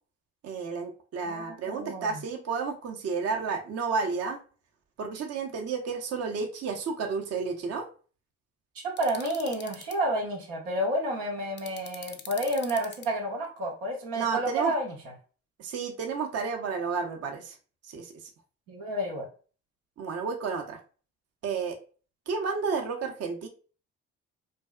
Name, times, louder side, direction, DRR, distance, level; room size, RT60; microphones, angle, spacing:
voice 1, 0.4-4.4 5.0-7.9 14.1-14.7 15.6-17.6 17.9-18.1 20.0-20.8 21.4-21.8 22.3-23.5, right 5 dB, 50° right, 2 dB, 0.6 m, -31 dB
voice 2, 1.3-2.2 9.0-14.9 18.7-19.3, right 1 dB, 85° right, -1 dB, 0.7 m, -30 dB
sound 1, 9.0-9.9 11.6-13.1, left 7 dB, 35° left, 0.4 m, -44 dB
2.6 x 2.3 x 2.3 m, 0.38 s
hypercardioid pair, 50°, 33 cm